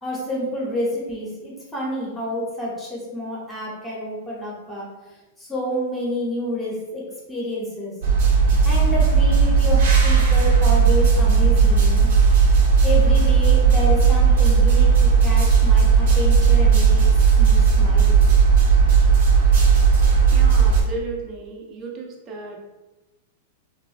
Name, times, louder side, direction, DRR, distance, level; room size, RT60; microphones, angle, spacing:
voice 1, 0.0-7.9 8.6-12.1 12.8-17.0 17.4-18.3, left 1 dB, 5° left, -5 dB, 0.7 m, -29 dB
sound 1, 8.0-20.8, right 5 dB, 65° right, 0.7 m, -16 dB
voice 2, 20.3-22.6, right 3 dB, 25° right, 0 dB, 0.5 m, -34 dB
3.0 x 2.1 x 2.4 m, 1.1 s
supercardioid pair, 160°, 0 cm